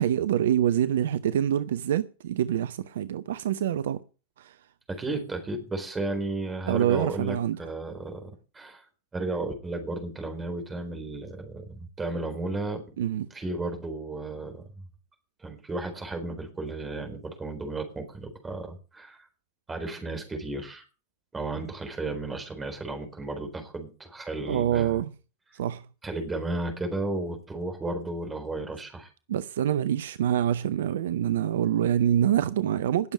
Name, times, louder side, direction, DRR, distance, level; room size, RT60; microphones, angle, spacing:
voice 1, 0.0-4.0 4.4-4.6 6.7-7.6 13.0-13.3 24.5-25.1 25.5-25.9 29.3-33.1, right 10 dB, 60° right, 0.5 m, -26 dB
voice 2, 4.9-8.9 9.1-12.8 13.3-14.7 15.4-19.3 19.7-20.9 21.3-25.0 26.0-29.1, right 2 dB, 15° right, 4.1 m, -34 dB
19.0 x 7.1 x 5.4 m
figure-of-eight pair, 90°, 0 cm